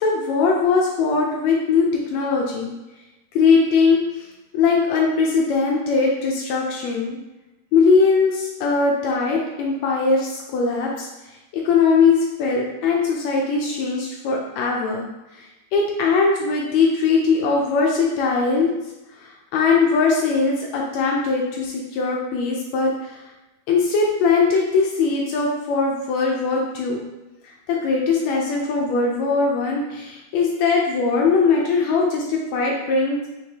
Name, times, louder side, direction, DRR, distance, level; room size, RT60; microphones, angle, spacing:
voice 1, 0.0-2.7 3.3-4.3 4.5-7.2 7.7-11.1 11.5-15.1 15.3-18.7 19.2-23.2 23.7-27.0 27.7-33.2, left 4 dB, 80° left, -1 dB, 1.6 m, -20 dB
5.1 x 3.2 x 2.8 m, 1.0 s
omnidirectional pair, 3.7 m